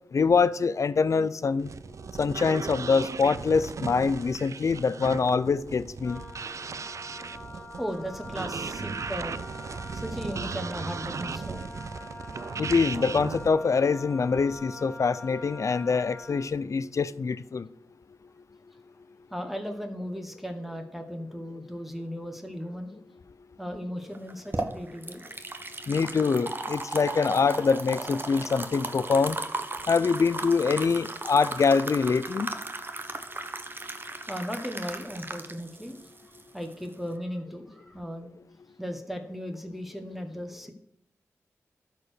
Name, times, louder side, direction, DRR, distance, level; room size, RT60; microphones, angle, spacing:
voice 1, 0.1-1.7 2.2-6.2 12.6-17.7 25.9-29.4 29.9-32.5, left 5 dB, 60° left, 0.5 m, -24 dB
sound 1, 1.6-13.5, right 5 dB, 60° right, 0.4 m, -37 dB
Wind instrument woodwind instrument, 6.0-16.6, left 2 dB, 20° left, 2.4 m, -44 dB
voice 2, 7.8-9.4 9.9-11.7 19.3-22.9 23.6-25.2 34.3-35.9 36.5-38.3 38.8-40.7, equal, 5° right, 1.2 m, -36 dB
sound 2, 24.1-37.1, right 2 dB, 35° right, 1.1 m, -36 dB
12.5 x 4.6 x 6.6 m
cardioid pair, 45°, 6 cm